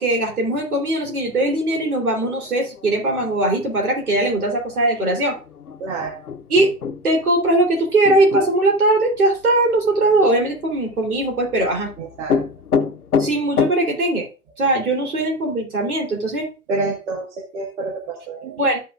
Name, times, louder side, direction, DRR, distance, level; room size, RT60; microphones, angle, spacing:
voice 1, 0.0-5.4 6.5-6.7 7.0-11.9 13.2-14.3 14.6-16.5 18.6-18.8, right 2 dB, 75° right, 2 dB, 3.6 m, -20 dB
sound 1, 1.3-13.7, left 6 dB, 80° left, 0.9 m, -29 dB
voice 2, 5.8-6.2 12.0-12.4 16.7-18.7, right 3 dB, 50° right, 3 dB, 1.6 m, -28 dB
14.0 x 5.7 x 2.4 m, 0.33 s
figure-of-eight pair, 110°, 44 cm